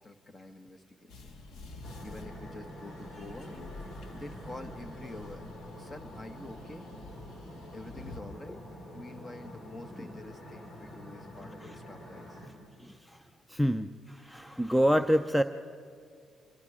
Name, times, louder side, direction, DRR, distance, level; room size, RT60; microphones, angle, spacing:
voice 1, 0.0-1.3 2.0-3.6 4.1-5.5 5.8-6.9 7.7-8.6 8.9-12.4, left 2 dB, 25° left, 8 dB, 1.4 m, -47 dB
sound 1, 1.1-8.2, left 2 dB, 75° left, 1.7 m, -49 dB
sound 2, 1.8-12.5, equal, 50° left, 5.1 m, -46 dB
voice 2, 12.8-13.2 13.5-15.4, equal, 5° left, 11 dB, 0.5 m, -27 dB
26.5 x 22.5 x 4.9 m, 2.4 s
cardioid pair, 90°, 0 cm